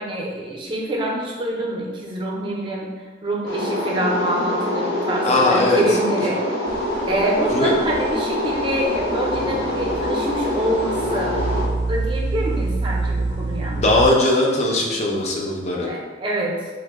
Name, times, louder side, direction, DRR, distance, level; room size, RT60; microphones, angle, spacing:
voice 1, 0.0-6.4 7.1-11.3 11.9-13.8 15.8-16.7, right 1 dB, 25° right, -2 dB, 0.4 m, -26 dB
sound 1, 3.5-11.6, left 1 dB, 80° left, 0.9 m, -25 dB
voice 2, 5.2-6.0 7.5-7.7 13.7-15.9, left 2 dB, 35° left, -2 dB, 0.4 m, -19 dB
sound 2, 6.7-14.1, right 3 dB, 90° right, 0.4 m, -28 dB
2.8 x 2.1 x 3.4 m, 1.4 s
head